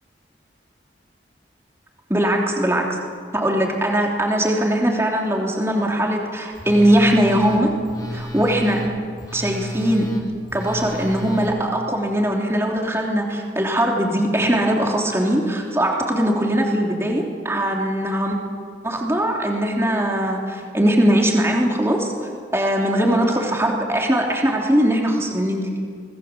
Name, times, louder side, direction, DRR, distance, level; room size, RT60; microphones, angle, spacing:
voice 1, 2.1-3.0 3.3-7.8 8.1-8.8 9.3-10.1 10.5-18.4 18.8-22.1 22.5-25.7, right 1 dB, 15° right, 0 dB, 3.2 m, -20 dB
Telephone, 6.5-11.5, equal, 20° left, 3.5 m, -32 dB
25.5 x 20.0 x 7.5 m, 2.1 s
head